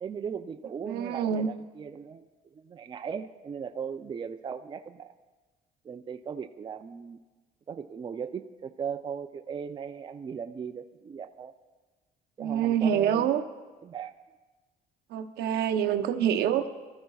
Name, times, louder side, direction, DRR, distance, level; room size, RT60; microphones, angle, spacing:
voice 1, 0.0-5.1 5.8-7.2 7.7-11.5 12.4-13.3 13.8-14.2, right 6 dB, 25° right, 8 dB, 0.5 m, -38 dB
voice 2, 0.8-1.5 12.4-13.4 15.1-16.7, right 9 dB, 75° right, 6 dB, 0.8 m, -26 dB
23.5 x 13.5 x 2.4 m, 1.2 s
cardioid pair, 110°, 17 cm